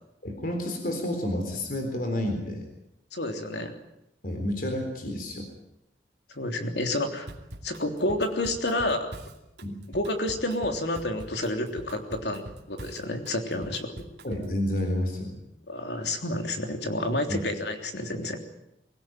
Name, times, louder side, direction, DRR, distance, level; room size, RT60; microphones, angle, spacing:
voice 1, 0.2-2.7 4.2-5.5 9.6-9.8 14.2-15.4 17.3-17.4, left 1 dB, 50° left, 4 dB, 4.0 m, -30 dB
voice 2, 3.1-3.7 6.3-7.3 7.6-9.1 9.9-13.9 15.7-18.4, left 1 dB, 75° left, 5 dB, 3.3 m, -29 dB
Drum kit / Drum, 7.3-14.6, right 1 dB, 75° right, 2.7 m, -44 dB
24.0 x 17.0 x 9.2 m, 0.83 s
head